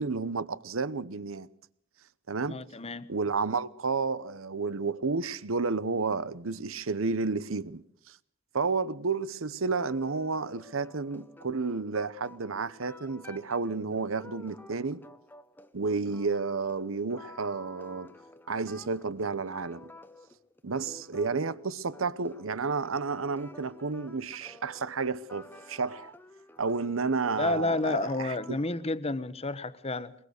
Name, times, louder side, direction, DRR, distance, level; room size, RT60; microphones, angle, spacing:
voice 1, 0.0-1.5 2.3-2.6 3.1-8.2 8.5-15.0 15.7-18.1 18.5-19.9 20.6-26.1 26.6-28.6, right 4 dB, 85° right, 0.9 m, -31 dB
voice 2, 2.5-3.1 27.4-30.1, left 2 dB, 30° left, 1.1 m, -30 dB
sound 1, 9.8-28.9, left 1 dB, 10° left, 0.9 m, -51 dB
22.5 x 22.0 x 6.6 m
head